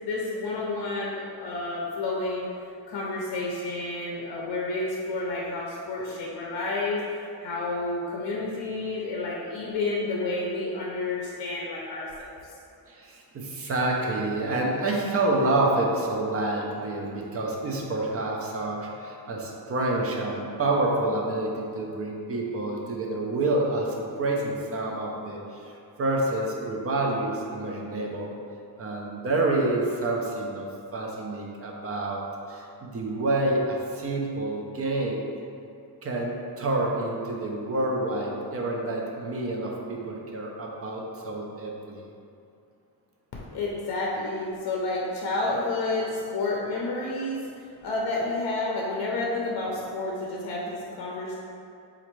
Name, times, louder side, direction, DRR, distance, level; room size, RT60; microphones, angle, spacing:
voice 1, 0.0-2.4 2.9-12.5 43.5-51.3, left 2 dB, 65° left, -4 dB, 0.6 m, -30 dB
voice 2, 12.9-25.7 26.0-28.3 28.8-35.2 36.0-42.0, right 2 dB, 35° right, -1 dB, 0.4 m, -28 dB
4.1 x 2.5 x 3.0 m, 2.6 s
wide cardioid pair, 150°, 41 cm